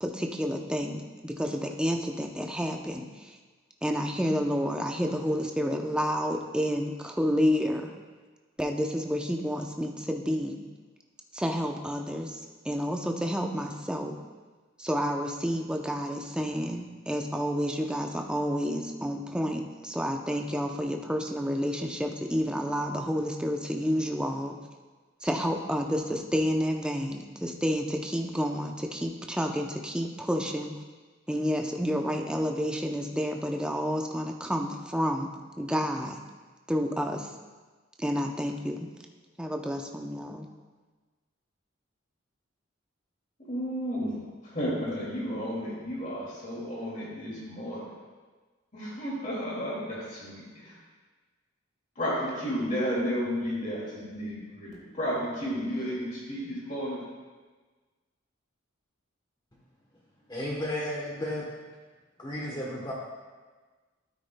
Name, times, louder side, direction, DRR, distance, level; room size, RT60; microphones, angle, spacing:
voice 1, 0.0-3.4 3.8-7.9 8.6-10.6 11.3-14.2 14.8-24.6 25.2-30.7 31.3-35.3 35.6-36.2 36.7-37.3 38.0-38.9 39.4-40.5, equal, 5° right, 2 dB, 0.6 m, -30 dB
voice 2, 43.4-44.2 44.4-47.9 48.7-50.8 52.0-57.0, equal, 40° left, -5 dB, 2.3 m, -32 dB
voice 3, 60.3-61.4 62.2-62.9, left 1 dB, 20° left, -3 dB, 1.0 m, -33 dB
12.0 x 9.2 x 2.2 m, 1.3 s
head